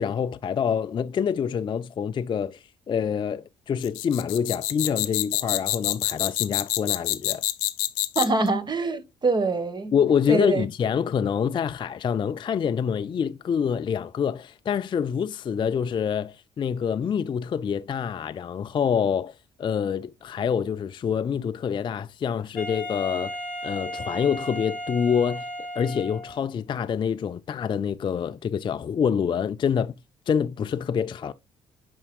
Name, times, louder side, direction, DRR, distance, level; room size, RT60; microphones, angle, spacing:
voice 1, 0.0-7.4 9.9-23.3 23.6-25.5 25.8-29.9 30.3-31.3, left 7 dB, 30° left, 0.4 m, -26 dB
sound 1, 3.8-8.5, left 20 dB, 75° left, 0.6 m, -27 dB
voice 2, 8.1-9.9 10.3-10.6, right 3 dB, 30° right, 1.3 m, -24 dB
Wind instrument woodwind instrument, 22.6-26.5, equal, 10° left, 2.1 m, -35 dB
9.5 x 4.6 x 2.3 m
hypercardioid pair, 50°, 15 cm